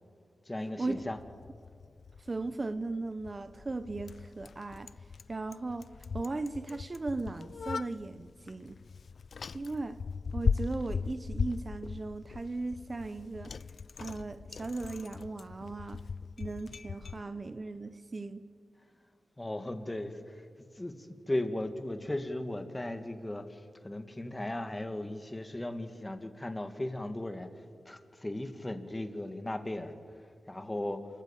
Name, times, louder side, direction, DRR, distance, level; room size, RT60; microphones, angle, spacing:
voice 1, 0.5-1.2 19.4-20.4 20.7-27.5 27.9-30.0 30.5-31.1, left 1 dB, 20° left, 2.3 m, -37 dB
Bicycle, 0.9-17.2, left 5 dB, 70° left, 0.5 m, -39 dB
voice 2, 2.2-4.9 5.3-5.9 6.1-8.8 9.5-10.0 10.3-13.6 14.0-16.0 16.4-18.5, right 3 dB, 40° right, 0.9 m, -37 dB
29.0 x 14.5 x 8.5 m
cardioid pair, 75°, 0 cm